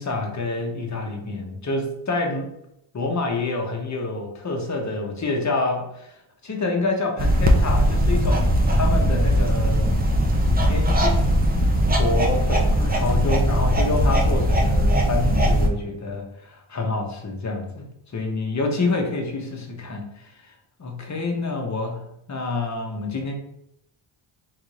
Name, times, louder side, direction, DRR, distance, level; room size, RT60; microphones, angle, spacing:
voice 1, 0.0-2.5 2.9-6.1 6.4-10.0 10.6-11.6 12.0-20.5 20.8-22.0 22.3-23.3, left 3 dB, 35° left, 2 dB, 1.0 m, -27 dB
sound 1, 7.2-15.7, equal, 20° right, 0.6 m, -19 dB
3.9 x 2.7 x 4.7 m, 0.81 s
cardioid pair, 100°, 50 cm